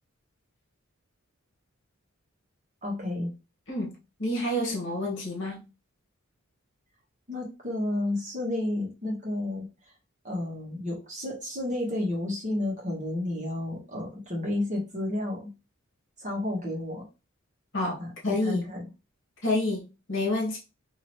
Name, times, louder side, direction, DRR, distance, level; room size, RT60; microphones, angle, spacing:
voice 1, 2.8-3.3 7.3-9.7 10.2-15.5 16.2-17.1 18.0-18.9, left 1 dB, 35° right, 1.3 m, -31 dB
voice 2, 3.7-5.6 17.7-18.6 19.4-20.6, left 1 dB, 60° left, 1.2 m, -29 dB
2.8 x 2.8 x 3.0 m
head